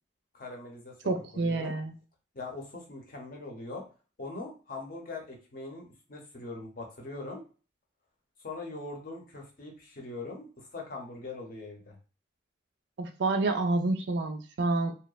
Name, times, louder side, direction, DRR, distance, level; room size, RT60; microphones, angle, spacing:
voice 1, 0.3-1.7 2.3-3.8 4.2-7.4 8.4-12.0, left 3 dB, 50° left, 0 dB, 0.7 m, -41 dB
voice 2, 1.1-1.9 13.0-14.9, right 3 dB, 70° right, 7 dB, 0.4 m, -28 dB
2.8 x 2.1 x 2.3 m, 0.36 s
head